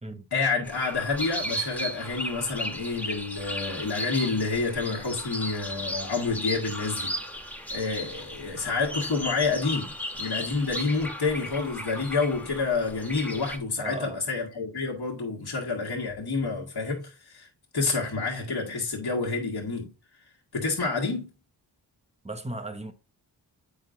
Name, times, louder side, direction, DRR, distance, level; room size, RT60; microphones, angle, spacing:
voice 1, 0.3-7.2 7.7-17.5 17.7-19.9 20.5-21.3, left 4 dB, 60° left, 1.7 m, -28 dB
sound 1, 0.6-13.6, equal, 5° left, 1.0 m, -35 dB
voice 2, 13.8-14.2 22.2-22.9, right 2 dB, 15° right, 1.0 m, -36 dB
8.0 x 5.1 x 2.6 m
cardioid pair, 55°, 43 cm